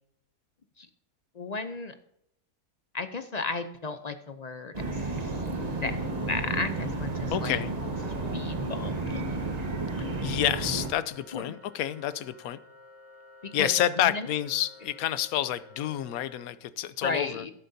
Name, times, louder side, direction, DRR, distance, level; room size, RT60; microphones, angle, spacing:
voice 1, 1.3-1.9 2.9-5.3 5.8-6.0 6.3-7.6 8.3-9.3 11.3-11.5 13.4-13.7 14.0-14.3 17.0-17.5, left 3 dB, 55° left, 9 dB, 0.4 m, -34 dB
sound 1, 4.7-10.9, right 2 dB, 30° right, 1.2 m, -32 dB
Wind instrument woodwind instrument, 5.3-16.5, left 2 dB, ahead, 4.5 m, -52 dB
voice 2, 7.3-7.7 10.2-12.6 13.5-17.4, left 12 dB, 80° left, 15 dB, 1.1 m, -29 dB
13.5 x 11.5 x 2.7 m, 0.76 s
omnidirectional pair, 1.6 m